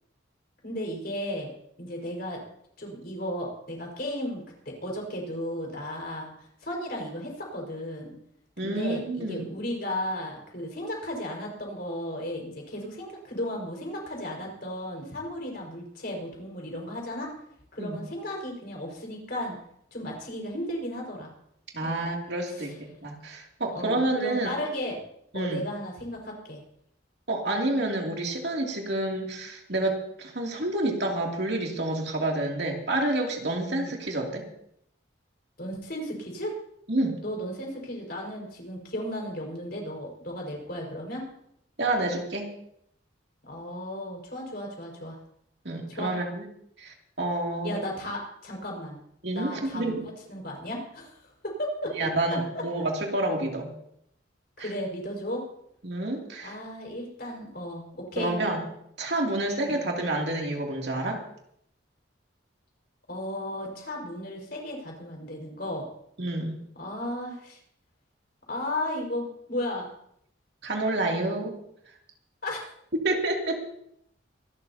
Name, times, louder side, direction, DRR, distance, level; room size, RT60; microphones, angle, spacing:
voice 1, 0.6-1.5 1.8-2.4 2.8-8.1 8.6-17.3 17.7-19.5 19.9-21.3 21.8-22.1 22.5-22.7 23.7-25.0 25.3-26.6 33.7-33.9 35.6-36.5 37.2-41.2 43.4-45.2 45.9-46.1 47.6-49.0 49.3-50.0 50.3-52.1 52.5-52.6 54.6-55.4 56.4-58.3 59.7-59.9 63.1-65.9 66.8-67.6 68.5-69.9 72.4-72.6, left 1 dB, 50° left, -1 dB, 5.2 m, -35 dB
voice 2, 8.6-9.5 17.8-18.0 21.7-24.5 25.3-25.6 27.3-34.5 36.9-37.2 41.8-42.5 45.6-46.4 46.8-47.8 49.2-50.1 51.9-53.7 54.6-54.7 55.8-56.6 58.2-58.6 59.0-61.2 66.2-66.5 70.6-71.5 73.0-73.6, right 2 dB, 55° right, 0 dB, 2.7 m, -29 dB
25.0 x 12.5 x 2.9 m, 0.72 s
head